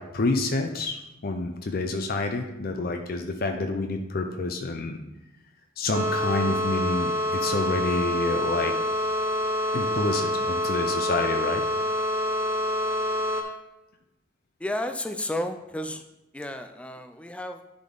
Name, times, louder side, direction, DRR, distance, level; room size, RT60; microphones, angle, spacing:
voice 1, 0.0-5.0 5.8-8.7 9.7-11.6, left 3 dB, 50° left, 5 dB, 0.6 m, -28 dB
sound 1, 5.9-13.4, equal, 15° right, 0.9 m, -27 dB
voice 2, 14.6-16.0 16.3-17.6, left 1 dB, 5° left, 7 dB, 0.3 m, -32 dB
10.5 x 3.8 x 3.8 m, 0.89 s
head